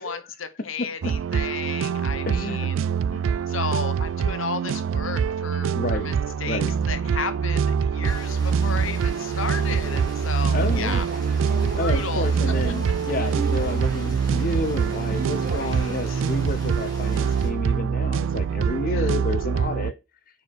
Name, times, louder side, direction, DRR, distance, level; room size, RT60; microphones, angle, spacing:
voice 1, 0.0-2.8 3.5-6.6 6.9-11.1 11.4-12.3 15.4-16.2 18.9-19.2, left 5 dB, 90° left, 1.0 m, -34 dB
sound 1, 1.0-19.9, right 6 dB, 80° right, 0.3 m, -24 dB
voice 2, 2.3-2.7 3.1-3.3 5.7-6.1 6.5-6.7 10.5-11.0 11.7-19.9, left 2 dB, 45° left, 0.7 m, -30 dB
sound 2, 8.0-17.5, equal, 20° left, 2.2 m, -42 dB
sound 3, 9.4-16.0, right 2 dB, 45° right, 0.9 m, -38 dB
6.2 x 4.7 x 4.7 m
head